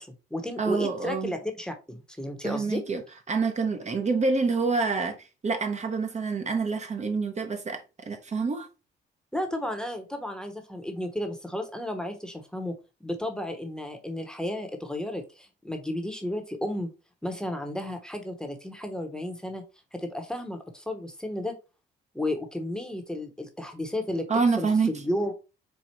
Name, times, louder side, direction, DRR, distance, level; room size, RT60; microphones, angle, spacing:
voice 1, 0.0-2.8 9.3-12.8 13.0-16.9 17.2-19.6 19.9-21.5 22.1-25.3, left 1 dB, 5° left, 1.0 m, -33 dB
voice 2, 0.6-1.3 2.4-3.0 3.3-8.7 24.3-24.9, right 4 dB, 35° right, 0.9 m, -27 dB
4.5 x 2.4 x 4.5 m
cardioid pair, 90°, 20 cm